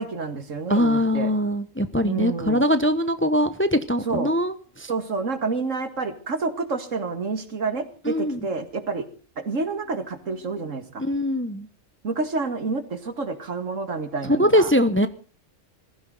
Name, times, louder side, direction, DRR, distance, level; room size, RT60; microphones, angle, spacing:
voice 1, 0.0-1.3 2.0-2.6 4.1-4.3 4.9-9.1 9.4-11.0 12.0-14.7, right 4 dB, 75° right, 10 dB, 2.4 m, -29 dB
voice 2, 0.7-4.9 8.0-8.4 11.0-11.7 14.2-15.1, equal, 10° left, 11 dB, 0.9 m, -22 dB
22.0 x 15.0 x 4.0 m, 0.39 s
omnidirectional pair, 1.3 m